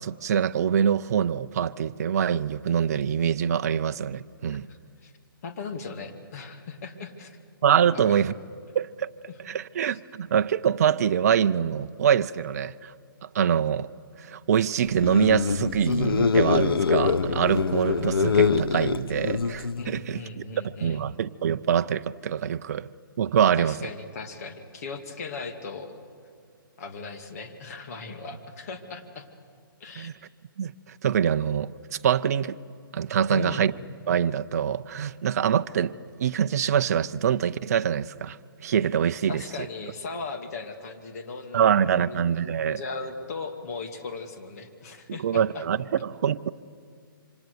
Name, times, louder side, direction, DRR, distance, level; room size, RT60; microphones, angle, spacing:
voice 1, 0.0-4.7 7.6-8.3 8.7-9.1 9.4-12.9 13.3-13.9 14.2-20.2 20.6-22.9 23.2-23.8 30.0-30.1 30.6-31.7 32.0-32.6 32.9-33.7 34.1-35.9 36.2-39.7 41.5-42.8 45.1-46.5, right 8 dB, 45° right, 0.6 m, -24 dB
voice 2, 5.4-7.4 7.9-8.2 9.3-9.4 9.9-10.0 19.8-21.0 23.6-26.0 26.8-29.2 29.8-30.1 33.3-33.8 39.3-45.7, left 4 dB, 45° left, 2.4 m, -38 dB
sound 1, 14.9-20.0, left 5 dB, 85° left, 1.0 m, -24 dB
27.0 x 25.5 x 6.9 m
hypercardioid pair, 160°, 12 cm